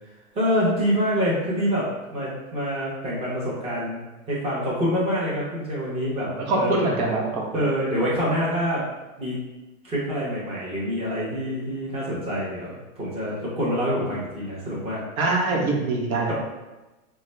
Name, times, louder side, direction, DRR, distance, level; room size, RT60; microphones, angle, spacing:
voice 1, 0.3-4.0 4.3-6.8 7.5-8.8 9.2-9.4 9.8-15.0 16.3-16.4, equal, 15° right, -7 dB, 0.9 m, -26 dB
voice 2, 6.4-7.6 15.2-16.3, right 2 dB, 75° right, -1 dB, 1.0 m, -23 dB
3.8 x 2.3 x 3.2 m, 1.1 s
hypercardioid pair, 135°, 43 cm